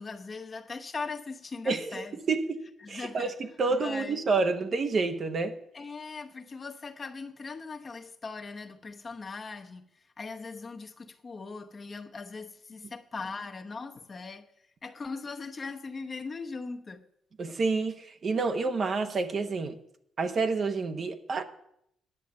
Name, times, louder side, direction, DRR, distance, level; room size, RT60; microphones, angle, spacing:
voice 1, 0.0-2.2 2.8-3.3 3.7-4.2 5.7-9.9 10.2-14.5 14.8-17.1, left 4 dB, 35° left, 0.9 m, -40 dB
voice 2, 1.7-2.6 2.9-5.6 17.4-19.8 20.2-21.4, right 4 dB, 45° right, 1.1 m, -29 dB
10.0 x 6.4 x 8.5 m
cardioid pair, 90°, 0 cm